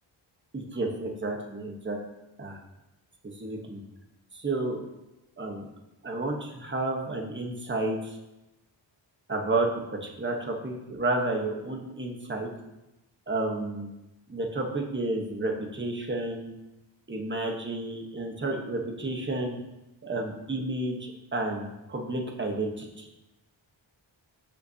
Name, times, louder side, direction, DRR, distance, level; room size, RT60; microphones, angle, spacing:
voice 1, 0.5-2.0 2.4-2.6 3.2-3.8 4.3-4.8 5.4-5.6 6.0-8.2 9.3-9.7 10.0-12.5 13.3-13.9 14.3-16.5 17.1-19.6 20.0-23.1, right 2 dB, 25° right, 1 dB, 1.1 m, -31 dB
16.0 x 5.5 x 2.8 m, 0.96 s
wide cardioid pair, 175°, 47 cm